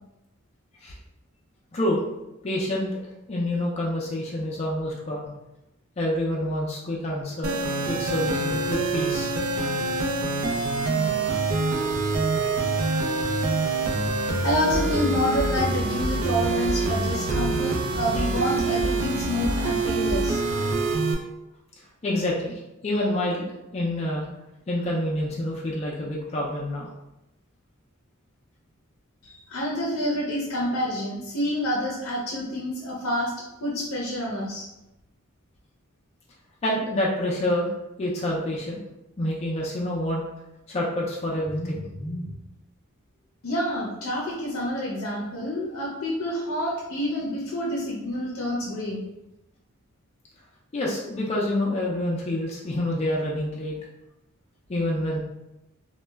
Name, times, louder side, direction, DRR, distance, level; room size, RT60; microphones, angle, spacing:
voice 1, 1.7-2.0 2.4-2.9 3.3-5.3 6.0-9.3 17.5-17.6 18.0-18.1 22.0-24.3 24.7-26.9 36.6-37.7 38.0-38.8 39.2-40.2 40.7-42.3 50.7-53.7 54.7-55.2, left 1 dB, 30° left, -4 dB, 0.4 m, -27 dB
sound 1, 7.4-21.1, right 3 dB, 80° right, 0.4 m, -25 dB
voice 2, 14.4-20.4 29.2-33.3 33.6-34.7 43.4-49.0, left 1 dB, 85° left, -3 dB, 0.5 m, -28 dB
2.2 x 2.0 x 3.3 m, 0.93 s
head